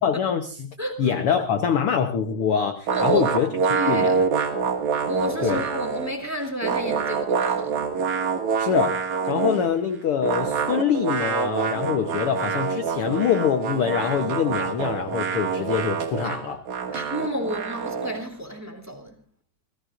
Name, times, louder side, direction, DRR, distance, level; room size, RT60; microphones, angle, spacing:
voice 1, 0.0-3.5 3.8-4.2 4.5-4.7 5.4-5.6 8.6-9.0 9.3-16.6, left 7 dB, 65° left, 1.5 m, -24 dB
voice 2, 2.9-3.2 3.6-4.2 5.1-7.8 16.9-19.1, equal, 5° right, 2.4 m, -31 dB
sound 1, 2.9-6.2 6.4-9.7 10.2-18.2, right 5 dB, 70° right, 3.0 m, -26 dB
29.0 x 16.0 x 2.6 m
omnidirectional pair, 3.7 m